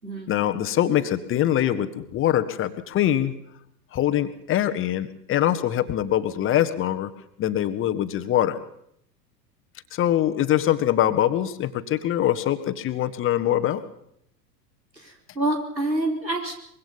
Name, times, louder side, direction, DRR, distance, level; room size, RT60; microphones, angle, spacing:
voice 1, 0.3-3.3 3.9-7.1 7.4-8.6 9.9-13.8, left 12 dB, 25° left, 10 dB, 1.5 m, -23 dB
voice 2, 15.0-16.5, right 1 dB, 90° right, 3 dB, 4.7 m, -27 dB
24.5 x 23.0 x 5.5 m, 0.72 s
figure-of-eight pair, 95°, 49 cm